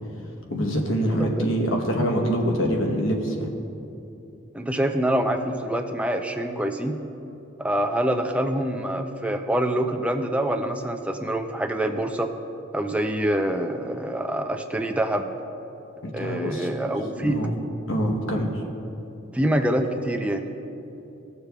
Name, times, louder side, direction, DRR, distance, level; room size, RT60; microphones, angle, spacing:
voice 1, 0.5-3.5 16.0-17.5 17.9-18.6, equal, 65° left, 1 dB, 1.0 m, -25 dB
voice 2, 4.5-6.9 7.6-12.3 12.7-15.2 16.1-17.4 19.3-20.5, right 1 dB, 5° right, 5 dB, 0.4 m, -25 dB
14.5 x 6.9 x 2.3 m, 2.9 s
head